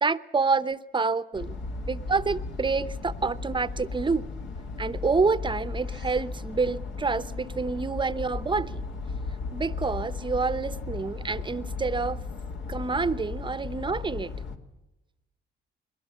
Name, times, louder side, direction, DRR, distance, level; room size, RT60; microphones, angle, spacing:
voice 1, 0.0-1.6 1.9-4.2 4.8-8.8 9.5-12.2 12.7-14.3, right 4 dB, 25° right, 0.9 m, -28 dB
sound 1, 1.3-14.6, left 4 dB, 70° left, 2.4 m, -36 dB
21.5 x 19.5 x 7.2 m
cardioid pair, 90°, 20 cm